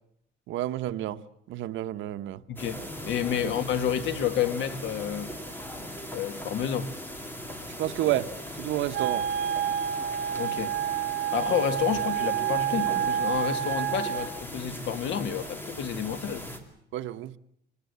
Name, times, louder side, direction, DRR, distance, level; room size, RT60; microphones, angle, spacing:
voice 1, 0.5-1.2 1.5-2.4 3.4-3.5 7.8-8.3 8.6-9.2 16.9-17.3, right 14 dB, 85° right, 1.0 m, -30 dB
voice 2, 2.5-5.3 6.1-6.9 10.4-10.7 11.3-16.5, left 9 dB, 75° left, 2.0 m, -30 dB
sound 1, 2.6-16.6, equal, 10° left, 2.7 m, -39 dB
Wind instrument woodwind instrument, 8.9-14.3, right 10 dB, 70° right, 2.1 m, -29 dB
25.5 x 20.0 x 8.1 m
cardioid pair, 165°, 19 cm